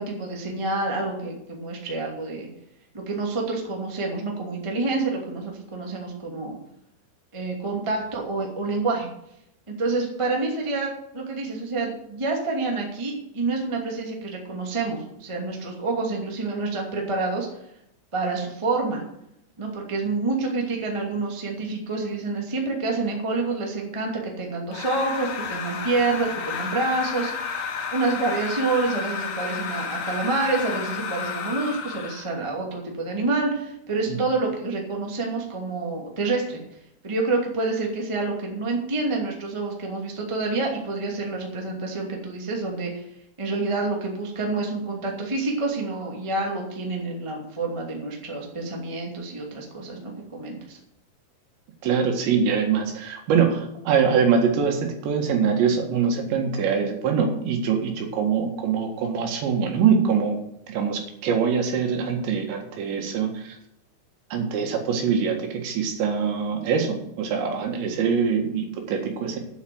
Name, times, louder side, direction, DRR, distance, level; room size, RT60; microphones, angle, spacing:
voice 1, 0.0-2.5 2.9-6.5 7.3-9.1 9.7-17.5 18.1-19.0 19.6-36.6 37.0-43.0 43.4-50.8, right 3 dB, 35° right, -1 dB, 0.4 m, -28 dB
sound 1, 24.7-32.3, left 6 dB, 60° left, 3.7 m, -32 dB
voice 2, 51.8-60.4 60.7-63.6 64.3-69.4, right 6 dB, 70° right, 3 dB, 3.8 m, -23 dB
9.1 x 8.2 x 7.8 m, 0.78 s
omnidirectional pair, 5.7 m